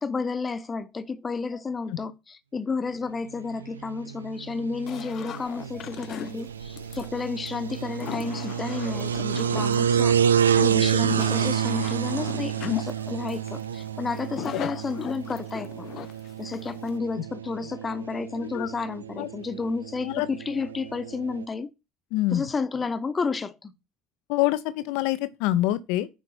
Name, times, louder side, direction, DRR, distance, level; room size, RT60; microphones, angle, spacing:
voice 1, 0.0-10.2 10.5-15.9 16.4-21.7 22.3-23.7, left 4 dB, 30° left, 1.2 m, -31 dB
sound 1, 3.4-21.4, right 8 dB, 85° right, 0.4 m, -29 dB
sound 2, 4.9-17.0, left 11 dB, 50° left, 0.5 m, -38 dB
voice 2, 18.4-18.7 19.2-19.3 20.0-20.3 22.1-22.5 24.3-26.1, left 15 dB, 65° left, 0.9 m, -26 dB
10.0 x 5.2 x 4.4 m
figure-of-eight pair, 60°, 0 cm